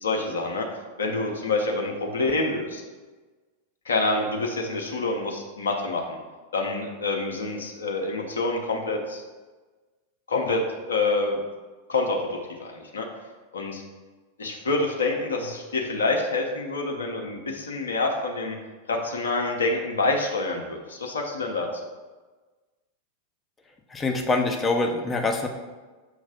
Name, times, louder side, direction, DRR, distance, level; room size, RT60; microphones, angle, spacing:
voice 1, 0.0-0.7 1.0-2.8 3.9-6.2 6.5-9.2 10.3-10.6 10.9-11.5 11.9-13.1 13.5-13.8 14.4-18.6 18.9-21.7, left 3 dB, 65° left, 1 dB, 0.8 m, -27 dB
voice 2, 23.9-25.5, left 2 dB, 15° left, 3 dB, 0.8 m, -24 dB
6.4 x 3.1 x 5.1 m, 1.3 s
figure-of-eight pair, 90°, 0 cm